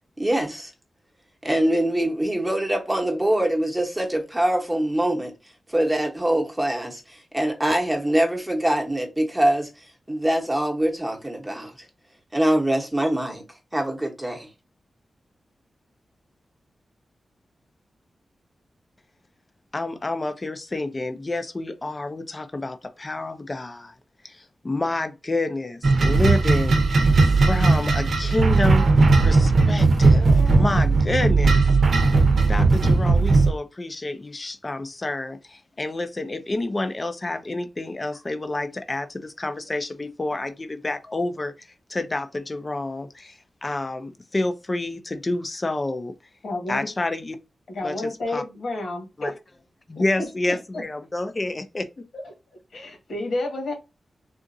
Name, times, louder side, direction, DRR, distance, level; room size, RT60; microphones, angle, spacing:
voice 1, 0.2-0.7 1.4-5.3 5.7-11.9 12.3-13.4 13.7-14.5, right 1 dB, 10° right, 0.9 m, -24 dB
voice 2, 19.7-23.9 24.2-26.8 27.4-28.9 29.2-31.6 31.9-32.2 32.5-46.1 46.7-47.4 47.8-48.4 49.2-49.3 49.9-52.1, left 2 dB, 30° left, 0.5 m, -29 dB
sound 1, 25.8-33.5, right 3 dB, 70° right, 0.7 m, -17 dB
voice 3, 46.4-46.9 47.7-49.3 49.9-50.0 50.7-50.8 52.1-52.3 52.7-53.7, left 2 dB, 75° left, 1.5 m, -30 dB
3.8 x 2.5 x 2.6 m
wide cardioid pair, 115°, 0 cm